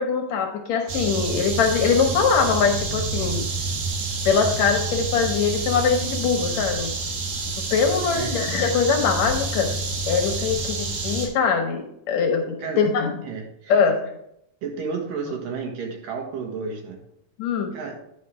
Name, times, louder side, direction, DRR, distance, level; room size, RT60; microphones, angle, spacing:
voice 1, 0.0-3.5 4.3-6.9 7.7-9.7 10.1-13.1 13.7-14.0 17.4-17.7, left 6 dB, 75° left, 4 dB, 1.7 m, -22 dB
sound 1, 0.9-11.3, right 3 dB, 70° right, 2.6 m, -28 dB
voice 2, 13.2-13.8 14.6-17.0 17.7-18.0, right 5 dB, 90° right, 2 dB, 3.1 m, -31 dB
10.5 x 4.7 x 4.7 m, 0.77 s
omnidirectional pair, 3.8 m